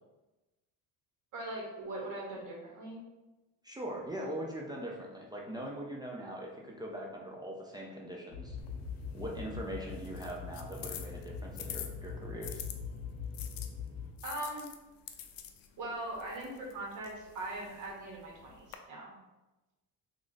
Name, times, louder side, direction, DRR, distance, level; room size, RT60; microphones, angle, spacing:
voice 1, 1.3-3.0 14.2-14.7 15.8-19.1, right 1 dB, 55° right, -2 dB, 1.3 m, -40 dB
voice 2, 3.6-8.6 9.1-12.6, right 1 dB, 10° right, -2 dB, 0.4 m, -41 dB
sound 1, 8.3-14.1, left 5 dB, 45° left, 0.9 m, -42 dB
sound 2, 8.6-12.8 13.3-18.8, left 10 dB, 65° left, 0.5 m, -48 dB
3.0 x 2.5 x 3.9 m, 1.1 s
cardioid pair, 130°, 37 cm